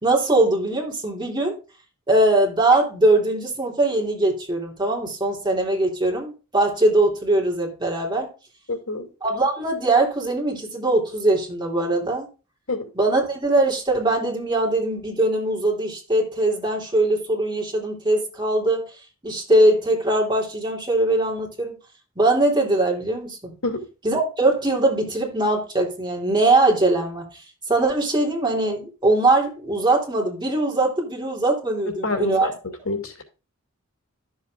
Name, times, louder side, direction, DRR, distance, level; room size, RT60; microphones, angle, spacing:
voice 1, 0.0-1.5 2.1-8.3 9.2-12.3 12.9-18.8 19.2-21.8 22.1-23.5 24.0-27.3 27.7-32.5, right 2 dB, 20° right, 3.3 m, -21 dB
voice 2, 8.7-9.1 12.7-12.9 23.6-23.9 31.9-32.5 32.9-33.2, left 2 dB, 70° left, 2.6 m, -27 dB
12.5 x 7.4 x 2.5 m
head